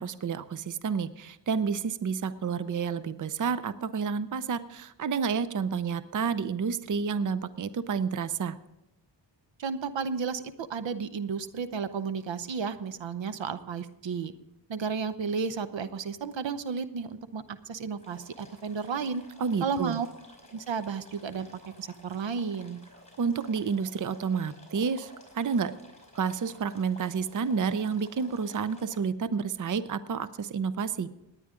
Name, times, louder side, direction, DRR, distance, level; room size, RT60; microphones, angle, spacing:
voice 1, 0.0-8.6 19.4-20.0 23.2-25.7 26.1-31.1, right 6 dB, 45° right, 14 dB, 0.6 m, -30 dB
voice 2, 9.6-14.3 14.7-19.2 19.6-20.1 20.5-21.5 21.8-22.8, right 5 dB, 80° right, 12 dB, 0.9 m, -33 dB
sound 1, 18.0-29.0, left 2 dB, 15° left, 4.7 m, -53 dB
18.0 x 9.9 x 3.7 m, 0.90 s
wide cardioid pair, 80°, 44 cm